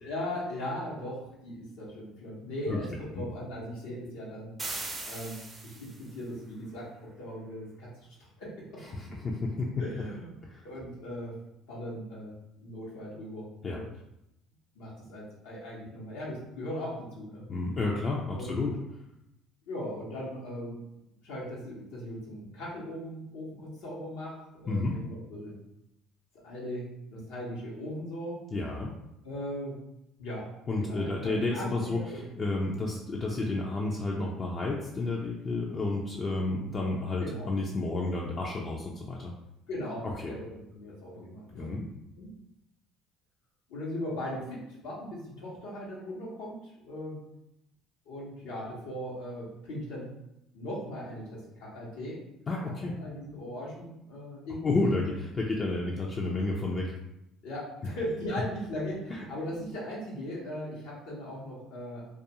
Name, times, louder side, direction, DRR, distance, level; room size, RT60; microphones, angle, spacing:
voice 1, 0.0-4.5 5.0-8.9 9.8-10.3 10.6-11.4 11.7-12.3 12.6-13.9 14.7-17.4 18.3-18.6 19.7-20.8 21.2-25.6 26.4-26.8 27.1-28.4 29.2-29.8 30.2-30.5 30.8-32.3 36.4-36.6 37.2-37.5 39.7-41.7 42.2-42.3 43.7-47.2 48.1-50.1 50.5-52.2 52.6-55.0 57.4-62.1, left 1 dB, 85° left, -6 dB, 0.8 m, -38 dB
sound 1, 4.6-6.1, right 2 dB, 25° right, 0.5 m, -39 dB
voice 2, 8.9-9.7 10.4-10.6 13.6-13.8 17.5-18.7 24.7-25.0 28.5-28.9 30.7-39.3 40.0-40.3 41.5-41.9 52.5-52.9 54.6-56.9, left 2 dB, 35° left, -2 dB, 0.4 m, -31 dB
2.3 x 2.2 x 2.8 m, 0.85 s
supercardioid pair, 85°, 0 cm